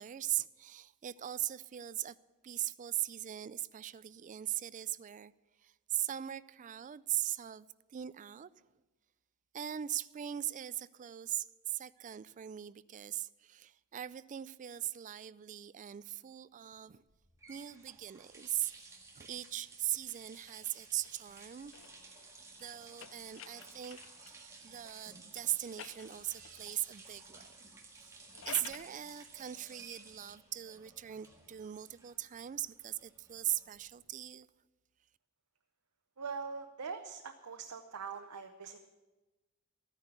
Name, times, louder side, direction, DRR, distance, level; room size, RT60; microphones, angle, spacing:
voice 1, 0.0-2.2 2.4-5.3 5.6-8.5 9.5-17.0 17.5-18.7 19.1-21.7 22.6-27.6 27.9-28.2 28.5-34.5, right 12 dB, 35° right, 0.3 m, -39 dB
sound 1, 17.1-34.1, right 3 dB, 15° right, 1.7 m, -56 dB
sound 2, 20.4-24.5 25.3-26.7 28.1-28.9, left 9 dB, 65° left, 0.5 m, -52 dB
voice 2, 36.2-38.9, right 5 dB, 90° right, 0.8 m, -43 dB
13.0 x 9.8 x 6.6 m
head